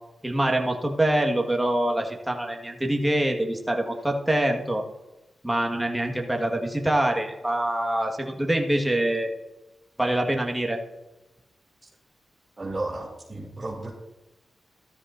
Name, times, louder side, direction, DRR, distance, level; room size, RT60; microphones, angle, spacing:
voice 1, 0.2-4.8 5.4-9.3 10.0-10.8, right 1 dB, 10° right, 2 dB, 1.7 m, -25 dB
voice 2, 12.6-13.9, right 2 dB, 30° right, -5 dB, 2.7 m, -33 dB
13.5 x 13.0 x 2.7 m, 1.0 s
cardioid pair, 75°, 0 cm